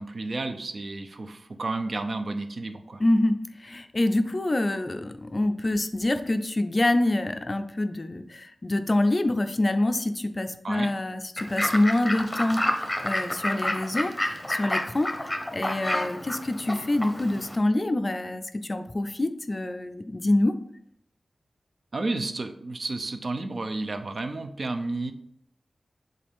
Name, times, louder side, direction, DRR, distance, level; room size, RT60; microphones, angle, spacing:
voice 1, 0.0-3.0 10.6-10.9 21.9-25.1, right 2 dB, 55° right, 7 dB, 0.5 m, -31 dB
voice 2, 3.0-20.5, left 1 dB, 30° left, 8 dB, 0.4 m, -26 dB
Fowl / Bird, 11.4-17.6, left 1 dB, 10° left, 0.8 m, -30 dB
7.6 x 3.7 x 3.6 m, 0.74 s
wide cardioid pair, 115°, 0 cm